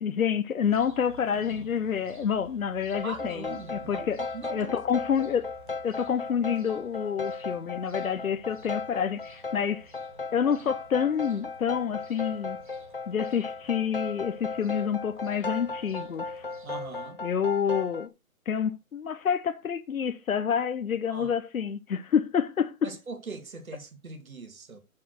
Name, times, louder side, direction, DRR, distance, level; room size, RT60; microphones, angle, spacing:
voice 1, 0.0-4.2 4.5-5.5 5.8-9.9 10.3-12.6 13.1-16.4 17.2-18.1 18.5-22.9, left 7 dB, 70° left, 0.8 m, -28 dB
sound 1, 0.6-17.1, right 3 dB, 35° right, 1.4 m, -54 dB
sound 2, 2.9-18.1, left 3 dB, 40° left, 0.4 m, -37 dB
voice 2, 3.0-4.8 16.6-17.2 21.1-21.3 22.8-24.8, right 3 dB, 70° right, 2.0 m, -41 dB
6.6 x 5.7 x 6.3 m
hypercardioid pair, 165°, 43 cm